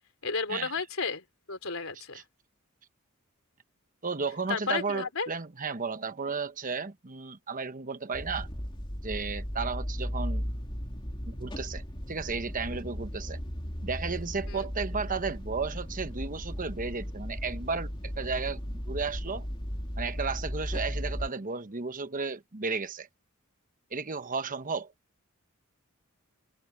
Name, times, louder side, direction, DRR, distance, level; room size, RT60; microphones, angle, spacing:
voice 1, 0.2-2.2 4.5-5.3 14.5-14.7, left 4 dB, 70° left, 4.1 m, -33 dB
voice 2, 4.0-8.5 9.0-10.5 11.3-13.4 13.8-19.5 20.0-23.1 23.9-24.9, right 4 dB, 40° right, 1.0 m, -34 dB
sound 1, 8.1-21.3, equal, 25° left, 2.8 m, -36 dB
head